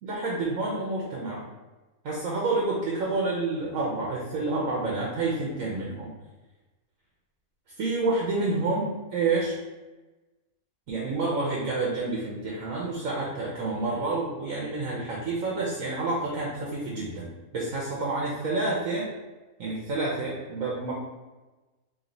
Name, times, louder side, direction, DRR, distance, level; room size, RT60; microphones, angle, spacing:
voice 1, 0.0-1.4 2.0-6.1 7.8-9.5 10.9-17.3 17.5-19.1 19.6-20.9, right 3 dB, 65° right, -4 dB, 1.0 m, -29 dB
3.1 x 2.8 x 3.8 m, 1.2 s
omnidirectional pair, 1.7 m